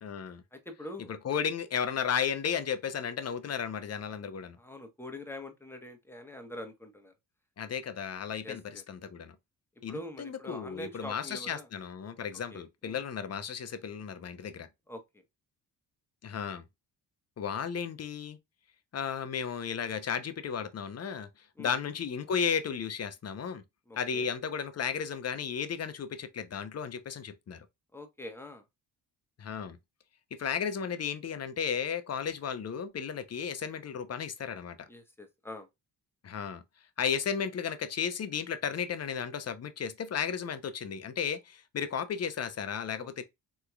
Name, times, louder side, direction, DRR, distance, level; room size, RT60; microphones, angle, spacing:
voice 1, 0.0-0.4 1.2-4.6 7.6-9.4 9.8-14.7 16.2-16.6 17.4-18.4 18.9-21.3 21.6-23.6 24.0-27.7 29.4-29.8 30.4-34.8 36.2-36.6 37.0-43.2, left 7 dB, 35° left, 0.6 m, -34 dB
voice 2, 0.5-1.1 4.6-7.1 8.4-8.8 9.9-11.7 12.5-13.0 14.9-15.2 21.6-21.8 23.9-24.3 27.9-28.6 34.9-35.7 43.0-43.2, left 1 dB, 5° left, 1.0 m, -44 dB
3.6 x 2.9 x 2.2 m
supercardioid pair, 60°, 43 cm